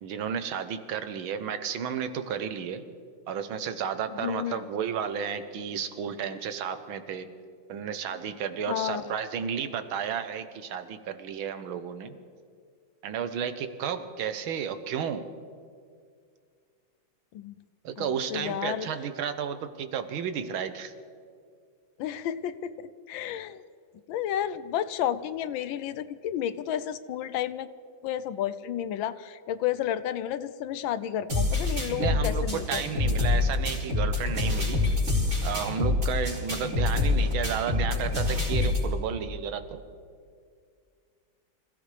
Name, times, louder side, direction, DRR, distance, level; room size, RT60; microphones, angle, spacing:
voice 1, 0.0-2.8 3.3-7.3 7.7-12.1 13.0-15.3 17.8-20.9 32.0-34.8 35.4-39.8, right 7 dB, 85° right, 10 dB, 1.7 m, -32 dB
voice 2, 4.2-4.6 8.7-9.0 17.3-17.6 18.0-18.9 22.0-23.6 24.1-27.7 28.0-32.8, left 10 dB, 80° left, 14 dB, 1.4 m, -31 dB
sound 1, 31.3-38.9, left 2 dB, 40° right, 4.7 m, -26 dB
26.0 x 16.5 x 3.3 m, 2.2 s
omnidirectional pair, 2.2 m